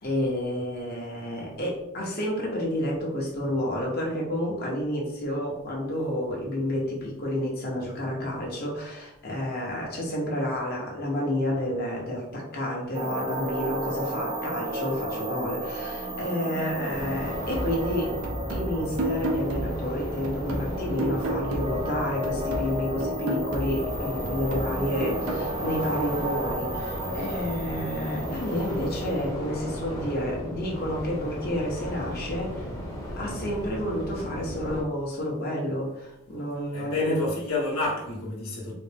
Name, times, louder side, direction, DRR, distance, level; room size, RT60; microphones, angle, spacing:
voice 1, 0.0-18.1 18.5-32.7 33.2-37.2, left 1 dB, 45° left, -3 dB, 1.0 m, -30 dB
sound 1, 12.9-29.3, right 1 dB, 25° right, 0.4 m, -34 dB
sound 2, 16.9-34.8, equal, 15° left, 0.8 m, -36 dB
sound 3, 17.5-22.0 22.2-25.5, right 1 dB, 80° right, 0.6 m, -33 dB
voice 2, 36.7-38.7, left 2 dB, 80° left, -5 dB, 1.1 m, -29 dB
4.1 x 2.1 x 3.4 m, 0.84 s
head